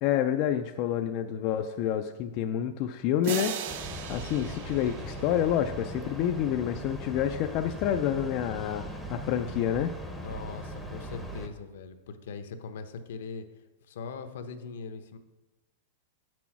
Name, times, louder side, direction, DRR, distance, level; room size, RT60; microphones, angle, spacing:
voice 1, 0.0-3.7 4.1-9.9, left 10 dB, 35° left, 6 dB, 0.3 m, -28 dB
sound 1, 3.2-6.1, right 10 dB, 50° right, 0.6 m, -38 dB
Train, 3.7-11.5, right 1 dB, ahead, 0.7 m, -39 dB
voice 2, 10.2-13.5 13.9-15.2, left 5 dB, 65° left, 8 dB, 0.8 m, -40 dB
8.2 x 6.1 x 5.9 m, 1.1 s
supercardioid pair, 175°, 0 cm